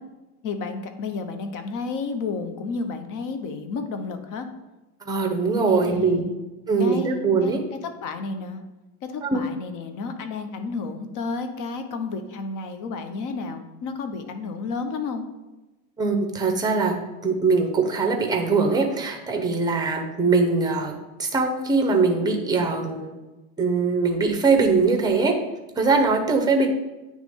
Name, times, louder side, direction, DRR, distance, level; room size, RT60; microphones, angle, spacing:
voice 1, 0.4-4.5 5.7-6.4 6.8-7.5 8.0-8.6 9.0-15.2, left 4 dB, 45° left, 7 dB, 0.8 m, -31 dB
voice 2, 5.0-6.2 6.7-7.6 9.2-9.4 16.0-17.0 17.2-23.2 23.6-25.4 25.8-26.7, right 4 dB, 10° right, 3 dB, 0.7 m, -22 dB
9.2 x 3.1 x 3.5 m, 1.1 s
cardioid pair, 135°, 46 cm